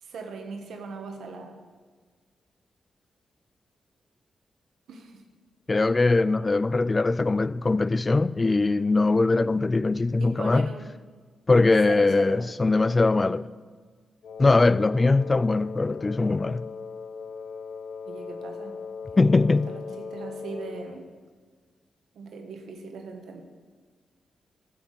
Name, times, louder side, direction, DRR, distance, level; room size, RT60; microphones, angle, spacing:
voice 1, 0.0-1.6 4.9-5.2 10.2-10.9 11.9-12.5 18.1-18.8 19.1-21.1 22.1-23.4, right 4 dB, 85° right, 1.4 m, -40 dB
voice 2, 5.7-10.7 11.5-13.5 14.4-16.7 19.2-19.7, left 3 dB, 30° left, 0.3 m, -21 dB
Wind instrument woodwind instrument, 14.2-21.0, left 5 dB, 70° left, 0.9 m, -39 dB
14.0 x 5.9 x 8.1 m
cardioid pair, 75°, 0 cm